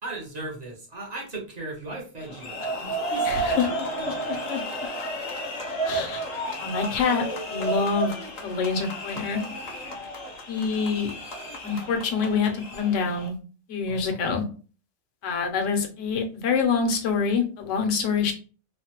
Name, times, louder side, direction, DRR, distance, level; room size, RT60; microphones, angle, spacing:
voice 1, 0.0-4.4 13.9-14.2, right 2 dB, 40° right, -2 dB, 0.8 m, -38 dB
sound 1, 2.2-13.3, right 2 dB, 45° left, 0.6 m, -32 dB
voice 2, 3.2-3.7 4.0-4.6 5.9-6.2 6.6-8.1 8.4-9.4 10.5-11.1 11.6-13.4 13.7-14.4 15.2-18.3, left 5 dB, 75° left, 4 dB, 1.0 m, -26 dB
3.1 x 2.1 x 2.8 m, 0.37 s
omnidirectional pair, 1.3 m